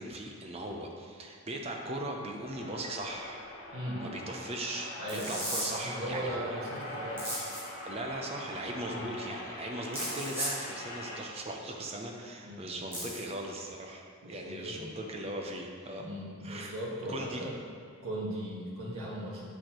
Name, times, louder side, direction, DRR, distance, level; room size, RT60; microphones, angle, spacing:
voice 1, 0.0-3.5 4.0-6.6 7.8-16.1 16.4-16.7 17.1-17.4, right 1 dB, 30° right, 1 dB, 0.6 m, -39 dB
sound 1, 2.4-11.2, left 1 dB, 75° left, 1.4 m, -43 dB
voice 2, 3.7-4.0 5.0-5.4 5.7-7.4 8.4-8.5 8.9-9.1 12.4-12.6 14.2-14.9 16.0-17.6 18.0-19.6, equal, 80° right, -6 dB, 1.7 m, -38 dB
sound 2, 5.1-5.7 7.2-7.6 9.9-10.5 12.9-13.2, equal, 10° right, 1.4 m, -35 dB
8.0 x 6.4 x 3.0 m, 2.1 s
head